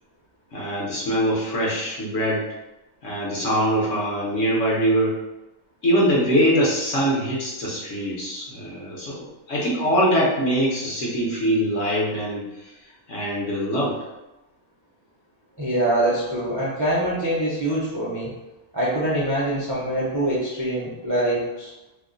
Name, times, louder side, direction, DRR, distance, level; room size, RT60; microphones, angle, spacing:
voice 1, 0.5-2.5 3.0-5.2 5.8-12.7 13.1-14.0, equal, 60° left, -5 dB, 1.1 m, -23 dB
voice 2, 15.6-18.3 18.7-21.7, right 1 dB, 30° right, -7 dB, 0.5 m, -24 dB
2.9 x 2.1 x 3.7 m, 0.99 s
omnidirectional pair, 1.6 m